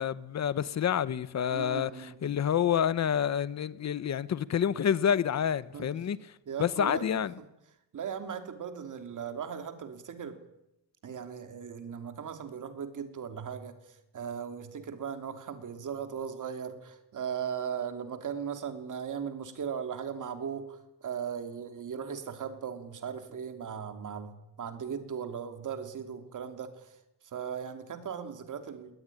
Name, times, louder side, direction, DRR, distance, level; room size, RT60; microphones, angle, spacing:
voice 1, 0.0-6.2 6.6-7.3, left 8 dB, 40° left, 1.0 m, -28 dB
voice 2, 1.5-2.2 5.7-5.9 6.5-7.0 7.9-10.4 11.0-27.0 27.2-28.9, right 7 dB, 45° right, 3.0 m, -38 dB
20.5 x 19.0 x 9.9 m
cardioid pair, 165°, 41 cm